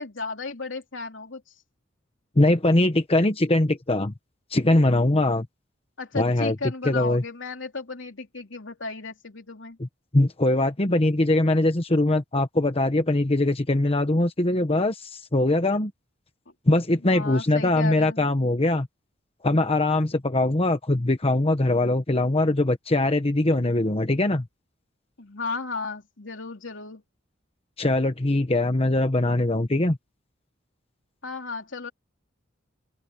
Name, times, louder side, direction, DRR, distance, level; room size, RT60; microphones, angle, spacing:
voice 1, 0.0-1.4 6.0-9.8 17.0-18.3 25.2-27.0 28.8-29.0 31.2-31.9, left 3 dB, 70° left, 3.4 m, -34 dB
voice 2, 2.4-4.1 4.5-5.5 6.1-6.5 6.8-7.2 9.8-9.9 10.1-15.9 16.7-18.9 19.4-24.5 27.8-30.0, left 2 dB, 30° left, 1.1 m, -22 dB
open air
head